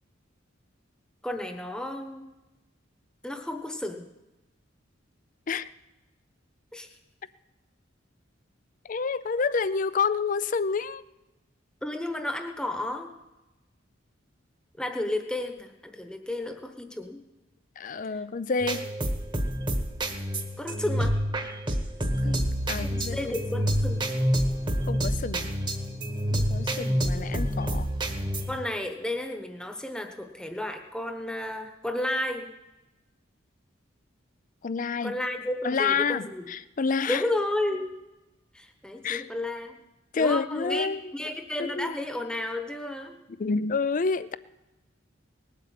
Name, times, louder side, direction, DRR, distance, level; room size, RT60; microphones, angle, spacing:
voice 1, 1.2-2.2 3.2-4.1 6.7-6.9 11.8-13.1 14.8-17.2 20.6-21.2 23.0-24.1 26.7-27.0 28.5-32.5 35.0-36.4 37.1-37.9 38.5-39.7 40.1-40.9 41.1-43.2, left 1 dB, 5° left, 5 dB, 1.1 m, -32 dB
voice 2, 8.8-11.0 17.8-18.9 22.2-23.2 24.9-25.5 26.3-27.9 34.6-35.1 35.6-37.2 39.0-39.3 40.1-41.1 41.6-41.9 43.4-44.4, left 5 dB, 40° left, 16 dB, 0.4 m, -28 dB
sound 1, 18.6-28.6, equal, 25° right, 1.2 m, -28 dB
19.5 x 8.4 x 7.5 m, 1.0 s
head